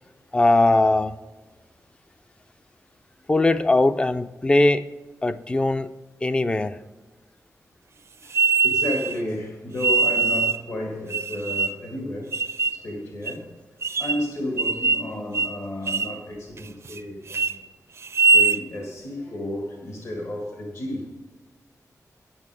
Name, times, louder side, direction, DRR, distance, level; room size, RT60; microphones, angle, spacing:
voice 1, 0.3-1.2 3.3-4.9 5.2-5.9 6.2-6.8, left 2 dB, 15° left, 0.3 m, -20 dB
voice 2, 8.2-12.3 12.7-13.5 14.0-17.6 18.3-21.1, left 1 dB, 55° left, 1.7 m, -32 dB
sound 1, 8.3-9.1 9.8-10.6 11.1-11.9 12.3-12.8 13.3-13.4 13.8-14.3 14.6-15.1 15.3-15.6 15.9-16.2 16.6-17.0 17.3-17.5 18.0-18.6, right 4 dB, 50° right, 0.4 m, -22 dB
9.8 x 8.8 x 4.8 m
wide cardioid pair, 170°, 6 cm